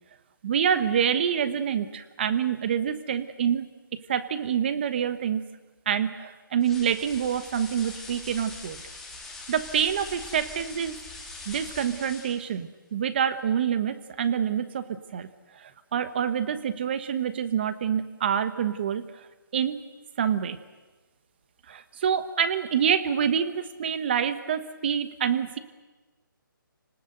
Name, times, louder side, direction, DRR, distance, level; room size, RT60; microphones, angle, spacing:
voice 1, 0.4-3.7 4.1-5.4 5.9-8.8 9.5-11.0 11.5-15.3 15.5-19.3 19.5-19.8 20.2-20.6 21.7-25.6, right 8 dB, 30° right, 12 dB, 1.2 m, -27 dB
sound 1, 6.6-12.5, left 3 dB, 5° left, 2.1 m, -42 dB
29.0 x 19.0 x 8.0 m, 1.2 s
hypercardioid pair, 170°, 12 cm